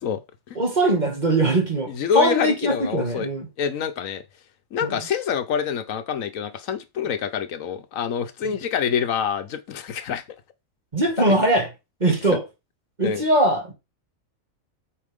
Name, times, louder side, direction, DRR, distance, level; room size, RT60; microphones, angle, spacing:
voice 1, 0.6-3.5 4.8-5.0 8.4-8.6 10.9-11.7 12.0-12.4 13.0-13.7, right 1 dB, 35° right, 2.3 m, -21 dB
voice 2, 1.9-3.3 3.6-4.2 4.7-10.2 13.0-13.2, left 7 dB, 80° left, 1.2 m, -26 dB
8.5 x 5.2 x 3.6 m
omnidirectional pair, 1.4 m